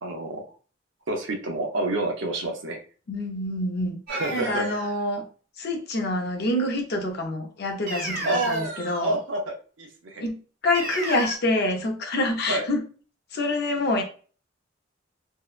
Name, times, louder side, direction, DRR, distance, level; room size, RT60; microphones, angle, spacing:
voice 1, 0.0-0.4 1.1-2.8 4.1-4.6 8.2-10.3 12.5-12.7, right 2 dB, 90° right, 2 dB, 0.6 m, -28 dB
voice 2, 3.1-4.0 4.3-5.2 5.6-9.2 10.2-10.4 10.6-12.8 13.3-14.0, left 2 dB, 60° left, 3 dB, 0.6 m, -26 dB
sound 1, 4.1-5.0 7.9-9.2 10.7-11.4, right 2 dB, 50° right, 0.6 m, -33 dB
2.7 x 2.1 x 2.4 m, 0.39 s
head